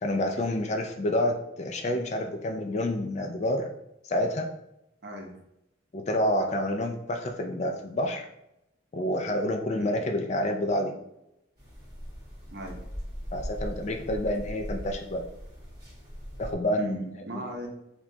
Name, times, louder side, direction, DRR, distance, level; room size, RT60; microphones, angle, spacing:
voice 1, 0.0-3.7 4.0-4.5 5.9-8.3 8.9-10.9 13.3-15.2 16.4-17.1, left 1 dB, 35° left, 4 dB, 0.3 m, -28 dB
sound 1, 11.6-16.5, equal, 20° right, 1.3 m, -39 dB
voice 2, 12.5-12.8 16.8-17.7, equal, 55° right, 2 dB, 0.7 m, -38 dB
4.8 x 2.3 x 2.6 m, 0.84 s
head